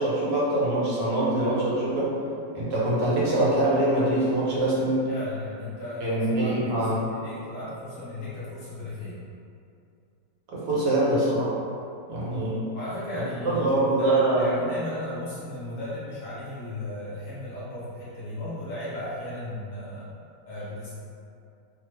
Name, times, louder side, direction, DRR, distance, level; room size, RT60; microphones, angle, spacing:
voice 1, 0.0-2.1 2.5-5.1 6.0-7.1 10.5-11.5 12.1-12.6 13.5-14.5, right 1 dB, 85° right, -7 dB, 1.5 m, -24 dB
voice 2, 5.1-9.2 12.7-20.1 20.5-20.9, left 1 dB, 60° left, -10 dB, 1.0 m, -35 dB
3.4 x 2.0 x 3.2 m, 2.5 s
omnidirectional pair, 1.8 m